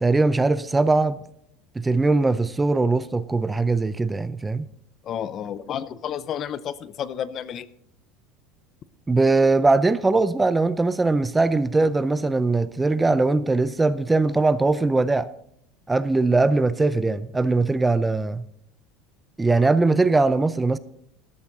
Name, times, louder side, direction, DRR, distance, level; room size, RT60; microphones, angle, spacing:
voice 1, 0.0-1.2 1.8-4.7 9.1-15.3 15.9-18.4 19.4-20.8, right 3 dB, 10° right, 0.5 m, -21 dB
voice 2, 5.0-7.7, left 9 dB, 40° left, 0.6 m, -31 dB
13.0 x 12.5 x 4.0 m
supercardioid pair, 140°, 0 cm